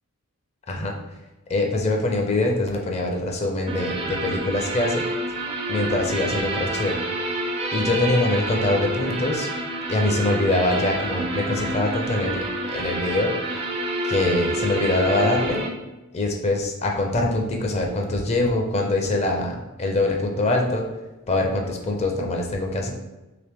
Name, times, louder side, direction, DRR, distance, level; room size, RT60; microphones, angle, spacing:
voice 1, 0.7-1.0 1.5-5.1 5.7-7.0 7.7-9.5 9.9-13.3 14.0-15.7 16.1-20.9 21.3-22.9, left 2 dB, 30° left, 2 dB, 0.5 m, -23 dB
sound 1, 3.7-15.7, right 1 dB, 25° right, 0.4 m, -28 dB
3.2 x 2.9 x 3.4 m, 1.1 s
head